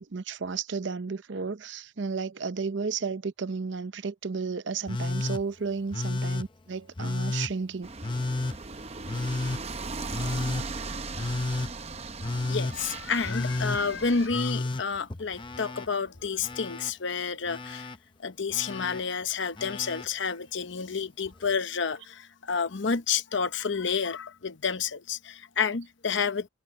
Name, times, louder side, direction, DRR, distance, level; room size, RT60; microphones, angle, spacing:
voice 1, 0.1-7.9, right 5 dB, 65° right, 0.7 m, -33 dB
Telephone, 4.9-5.4 5.9-6.5 7.0-7.5 8.0-8.6 9.1-9.6 10.1-10.7 11.2-11.7 12.2-12.8 13.2-13.8 14.3-15.9 16.1-16.9 17.5-18.0 18.5-19.0 19.6-20.1 21.3-21.4, left 2 dB, 25° left, 0.6 m, -31 dB
sound 1, 7.8-14.3, right 3 dB, 30° right, 0.8 m, -38 dB
voice 2, 12.5-17.9 18.2-26.5, left 5 dB, 65° left, 0.8 m, -30 dB
head